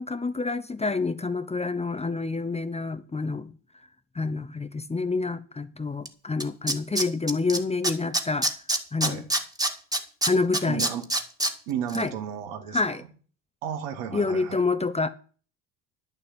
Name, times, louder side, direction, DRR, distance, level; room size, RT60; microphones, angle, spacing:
voice 1, 0.0-3.5 4.1-8.5 8.9-9.2 10.2-10.8 11.9-12.1 12.7-13.0 14.1-15.1, left 3 dB, 15° left, 0.8 m, -27 dB
Tools, 6.1-6.2 6.4-7.6 7.8-11.5 11.9-12.0, right 1 dB, 10° right, 1.9 m, -25 dB
voice 2, 10.7-11.1 11.7-13.0 13.6-14.6, right 8 dB, 70° right, 2.4 m, -33 dB
11.0 x 7.3 x 7.0 m
hypercardioid pair, 70°, 49 cm